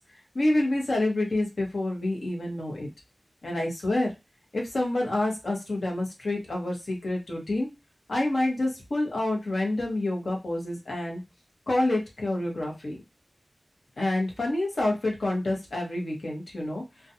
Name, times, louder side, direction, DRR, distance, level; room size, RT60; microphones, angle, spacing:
voice 1, 0.3-2.9 3.4-4.1 4.5-7.7 8.1-11.2 11.7-13.0 14.0-16.8, left 1 dB, 80° left, -1 dB, 0.9 m, -28 dB
2.4 x 2.2 x 2.7 m, 0.24 s
wide cardioid pair, 70°, 0 cm